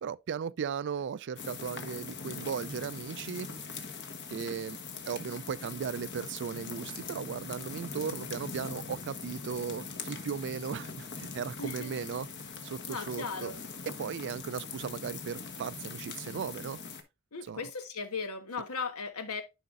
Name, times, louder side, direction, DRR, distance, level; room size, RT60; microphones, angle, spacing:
voice 1, 0.0-3.5 4.3-4.8 5.1-12.3 12.6-13.5 14.0-16.8 17.5-17.6, right 7 dB, 55° right, 0.4 m, -37 dB
sound 1, 1.4-17.0, left 4 dB, 55° left, 1.2 m, -42 dB
voice 2, 11.6-11.9 12.9-13.5 17.3-19.4, left 4 dB, 90° left, 1.3 m, -37 dB
10.5 x 5.0 x 2.5 m
head